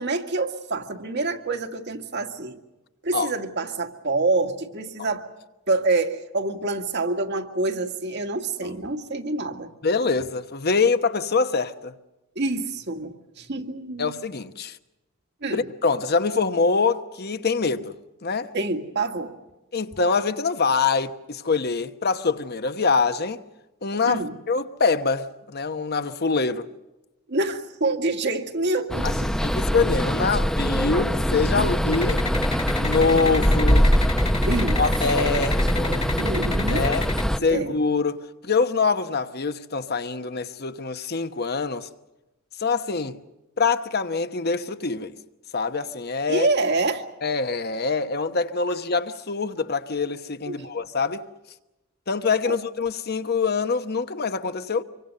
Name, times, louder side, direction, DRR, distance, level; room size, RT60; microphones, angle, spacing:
voice 1, 0.0-2.6 3.0-5.3 5.7-9.7 12.4-14.1 15.4-15.6 18.5-19.4 24.1-24.4 27.3-29.3 31.6-31.7 34.4-34.8 35.2-35.3 36.2-36.9 37.5-37.8 46.3-47.0 50.5-50.7 52.4-52.6, right 3 dB, 60° right, 1.9 m, -27 dB
voice 2, 9.8-11.9 14.0-14.8 15.5-17.9 18.2-18.5 19.7-23.4 23.8-26.7 29.0-29.1 29.4-32.2 32.8-33.9 34.8-36.1 36.7-37.0 37.4-41.9 42.6-43.2 43.6-45.1 45.5-46.5 47.2-51.2 52.1-54.8, left 4 dB, 50° left, 1.1 m, -24 dB
sound 1, 28.9-37.4, equal, 5° left, 0.8 m, -23 dB
sound 2, 31.9-37.2, left 3 dB, 30° left, 1.7 m, -30 dB
26.0 x 24.0 x 6.7 m
head